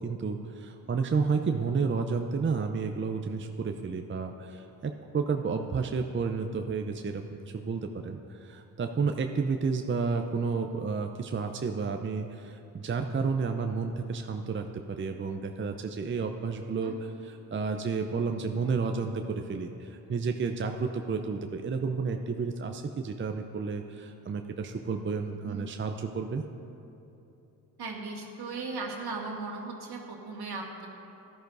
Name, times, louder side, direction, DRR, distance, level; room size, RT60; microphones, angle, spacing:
voice 1, 0.0-26.4, right 5 dB, 25° right, 5 dB, 0.6 m, -31 dB
voice 2, 27.8-30.9, right 3 dB, 60° right, 0 dB, 1.9 m, -37 dB
16.0 x 11.0 x 2.7 m, 2.9 s
hypercardioid pair, 45°, 44 cm